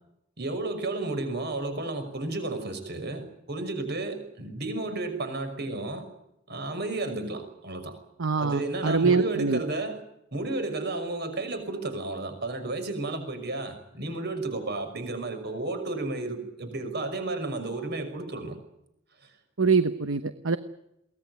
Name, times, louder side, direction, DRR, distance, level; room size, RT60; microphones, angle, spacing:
voice 1, 0.4-6.0 6.5-8.0 8.4-10.0 10.3-18.5, right 2 dB, 55° right, 8 dB, 5.8 m, -32 dB
voice 2, 8.2-9.6 19.6-20.6, right 4 dB, 70° right, 10 dB, 1.0 m, -24 dB
23.0 x 19.0 x 9.4 m, 0.83 s
head